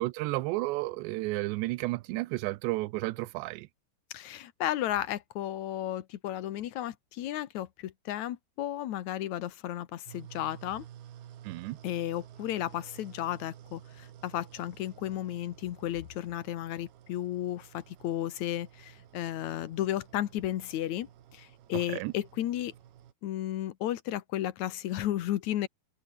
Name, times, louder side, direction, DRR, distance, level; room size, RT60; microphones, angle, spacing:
voice 1, 0.0-3.7 11.4-11.8 21.9-22.1, right 20 dB, 85° right, 2.8 m, -32 dB
voice 2, 4.1-10.8 11.8-22.7 23.2-25.7, left 12 dB, 90° left, 1.6 m, -34 dB
sound 1, 10.1-23.1, right 11 dB, 65° right, 3.7 m, -52 dB
omnidirectional pair, 5.1 m